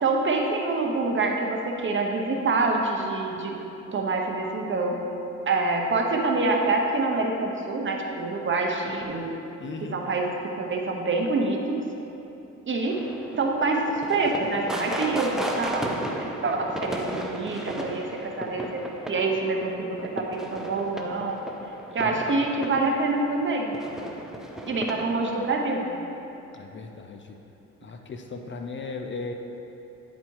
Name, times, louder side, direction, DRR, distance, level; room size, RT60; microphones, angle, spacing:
voice 1, 0.0-3.6 3.9-5.0 5.5-9.4 9.9-11.8 12.7-13.0 13.4-13.8 14.1-18.8 19.1-21.4 21.9-23.7 24.7-26.0, right 3 dB, 40° right, 1 dB, 1.0 m, -26 dB
voice 2, 9.6-10.0 22.0-22.4 26.5-27.4 27.8-29.3, left 4 dB, 40° left, 4 dB, 0.6 m, -37 dB
sound 1, 12.9-25.5, right 1 dB, ahead, 0.6 m, -35 dB
9.3 x 4.2 x 4.7 m, 3.0 s
cardioid pair, 90°, 30 cm